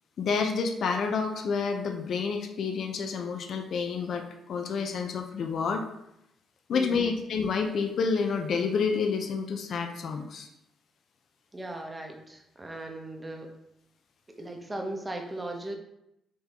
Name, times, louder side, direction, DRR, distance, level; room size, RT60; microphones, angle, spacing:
voice 1, 0.2-5.8 6.7-10.5, left 5 dB, 60° left, 4 dB, 0.5 m, -29 dB
voice 2, 6.7-7.1 11.5-13.5 14.4-15.8, right 1 dB, 15° right, 3 dB, 0.7 m, -37 dB
4.1 x 2.9 x 3.5 m, 0.81 s
cardioid pair, 90°, 0 cm